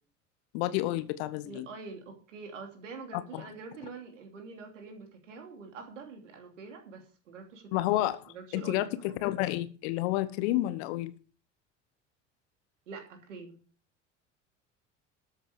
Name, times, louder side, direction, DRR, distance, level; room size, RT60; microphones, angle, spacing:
voice 1, 0.5-1.7 3.3-3.5 7.7-11.1, left 15 dB, 55° left, 1.2 m, -30 dB
voice 2, 1.5-8.0 8.3-9.2 12.9-13.6, right 4 dB, 70° right, 3.1 m, -45 dB
13.5 x 7.5 x 5.1 m
figure-of-eight pair, 65°, 38 cm